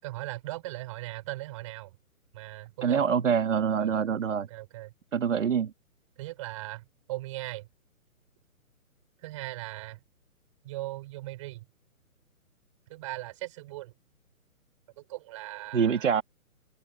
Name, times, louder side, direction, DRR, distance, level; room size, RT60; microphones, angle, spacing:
voice 1, 0.0-1.9 2.3-3.0 3.8-3.9 4.5-4.9 6.2-7.7 9.2-10.0 10.6-11.6 12.9-13.9 14.9-16.1, right 18 dB, 20° right, 6.9 m, -39 dB
voice 2, 2.8-4.5 5.1-5.7 15.7-16.2, right 7 dB, 55° right, 2.8 m, -25 dB
hypercardioid pair, 175°, 43 cm